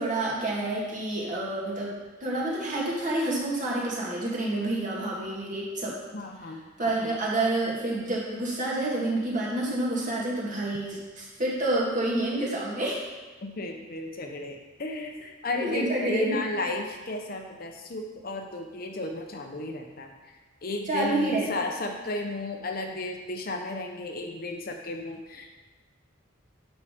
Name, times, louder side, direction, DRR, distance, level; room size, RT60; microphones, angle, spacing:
voice 1, 0.0-1.9 2.2-6.0 6.8-13.0 15.7-16.4 20.9-21.5, right 2 dB, 40° right, -4 dB, 2.0 m, -28 dB
voice 2, 6.1-7.1 13.4-20.1 20.6-25.5, left 2 dB, 45° left, 3 dB, 0.8 m, -34 dB
8.5 x 5.7 x 5.0 m, 1.3 s
head